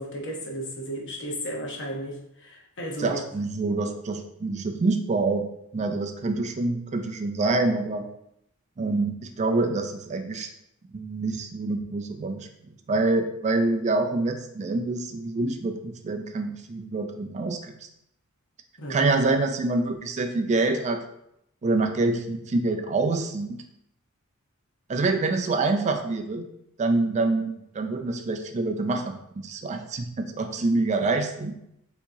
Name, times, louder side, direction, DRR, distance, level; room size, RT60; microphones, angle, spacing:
voice 1, 0.0-3.2 18.8-19.0, equal, 55° left, 0 dB, 1.0 m, -34 dB
voice 2, 3.0-5.5 5.7-8.1 8.8-10.5 10.9-12.5 12.9-17.9 18.9-21.0 21.6-23.6 24.9-26.5 26.8-31.6, right 3 dB, 30° right, 5 dB, 0.3 m, -26 dB
6.1 x 2.9 x 2.7 m, 0.77 s
head